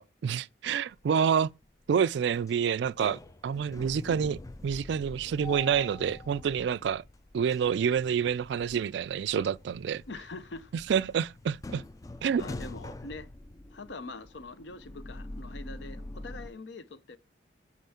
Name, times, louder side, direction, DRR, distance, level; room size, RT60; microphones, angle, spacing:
voice 1, 0.0-1.5 1.9-7.0 7.3-10.0 10.9-11.8 12.2-12.4, right 7 dB, 65° right, 0.3 m, -28 dB
sound 1, 1.0-1.5 1.9-16.5, left 2 dB, 20° left, 0.3 m, -45 dB
voice 2, 10.1-10.7 12.4-13.3 13.7-17.2, left 3 dB, 70° left, 0.7 m, -43 dB
9.0 x 3.2 x 5.6 m
head